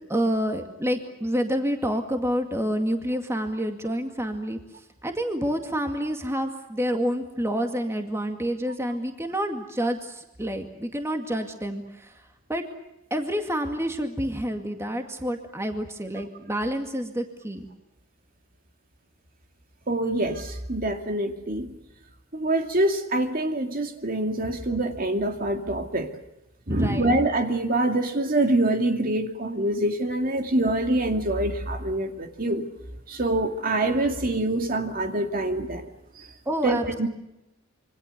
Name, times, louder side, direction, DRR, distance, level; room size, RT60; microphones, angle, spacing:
voice 1, 0.1-4.6 5.0-12.2 12.5-12.6 13.1-17.7 24.4-24.5 26.7-27.2 36.5-37.1, equal, 15° right, 5 dB, 2.2 m, -28 dB
voice 2, 19.9-21.7 22.3-26.1 26.7-32.7 33.1-35.9 36.2-36.3 36.6-37.1, right 1 dB, 45° right, 5 dB, 2.4 m, -25 dB
27.0 x 24.5 x 6.7 m, 0.89 s
head